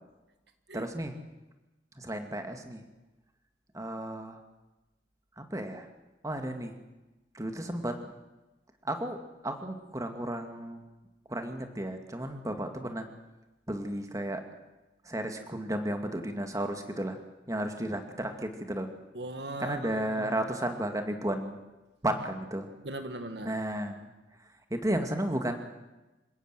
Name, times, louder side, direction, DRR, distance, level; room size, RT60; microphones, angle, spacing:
voice 1, 0.7-1.1 2.0-2.8 3.7-4.4 5.4-5.9 6.2-6.8 7.3-8.1 8.8-10.8 11.3-13.1 13.7-14.4 15.0-17.2 17.5-18.9 19.6-21.6 22.0-22.7 23.4-24.1 24.4-25.6, right 1 dB, 20° right, 6 dB, 2.2 m, -33 dB
voice 2, 19.1-20.5 22.8-23.6, right 2 dB, 65° right, 8 dB, 2.0 m, -39 dB
27.5 x 17.0 x 7.7 m, 1.1 s
head